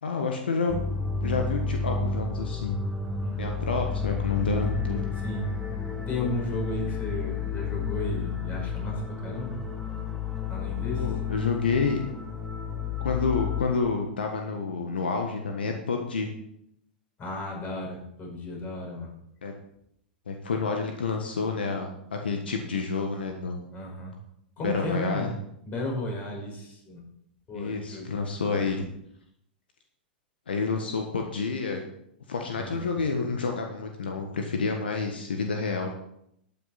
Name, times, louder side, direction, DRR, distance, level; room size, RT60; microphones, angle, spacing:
voice 1, 0.0-0.8 1.2-2.8 3.4-5.1 11.0-12.0 13.0-16.3 19.4-19.5 20.3-23.6 24.6-25.3 27.5-28.8 30.5-31.8 32.3-35.9, left 4 dB, 80° left, 3 dB, 1.4 m, -29 dB
sound 1, 0.7-13.6, left 5 dB, ahead, 1.5 m, -31 dB
voice 2, 3.2-3.5 5.2-5.5 6.1-9.6 10.5-11.1 17.2-19.1 23.7-24.1 24.6-25.3 25.6-27.0 27.5-28.2 32.6-33.0, left 1 dB, 30° left, 0 dB, 5.1 m, -34 dB
12.0 x 9.3 x 4.2 m, 0.75 s
hypercardioid pair, 105°, 5 cm